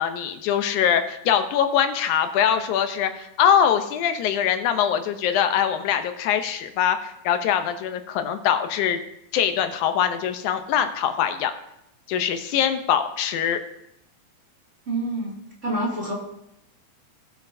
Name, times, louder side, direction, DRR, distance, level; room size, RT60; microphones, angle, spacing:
voice 1, 0.0-9.0 9.3-11.5 12.1-13.6, left 9 dB, 85° left, 8 dB, 2.2 m, -23 dB
voice 2, 14.9-16.1, right 1 dB, 25° right, -5 dB, 2.3 m, -28 dB
18.5 x 8.2 x 2.7 m, 0.83 s
omnidirectional pair, 3.4 m